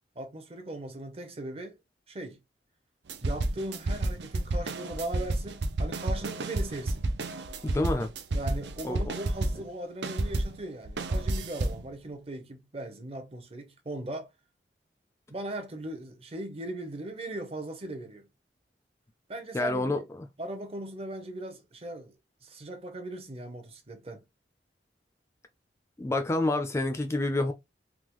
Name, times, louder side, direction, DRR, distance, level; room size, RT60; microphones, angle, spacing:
voice 1, 0.2-1.8 2.1-2.4 3.2-7.1 8.3-14.3 15.3-18.3 19.3-20.1 20.4-22.1 22.4-24.2, right 1 dB, 35° right, 0.7 m, -38 dB
sound 1, 3.1-9.7 10.0-11.9, right 2 dB, 80° right, 0.5 m, -31 dB
voice 2, 7.6-8.1 8.8-9.1 19.5-20.2 26.0-27.5, left 2 dB, 15° left, 0.4 m, -28 dB
3.6 x 2.2 x 3.0 m
head